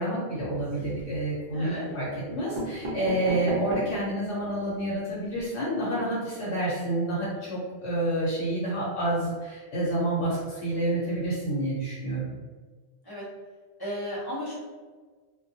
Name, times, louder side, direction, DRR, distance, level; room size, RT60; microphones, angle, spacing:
voice 1, 0.0-2.1 2.3-12.3, right 1 dB, 85° left, -7 dB, 1.0 m, -29 dB
sound 1, 0.5-1.2 1.9-2.0 2.3-4.1 4.6-4.7 4.9-5.0 5.3-5.4, right 1 dB, 40° right, 0.5 m, -35 dB
voice 2, 1.5-1.9 13.0-13.2 13.8-14.6, equal, 25° left, -7 dB, 0.6 m, -34 dB
2.2 x 2.1 x 2.6 m, 1.4 s
omnidirectional pair, 1.1 m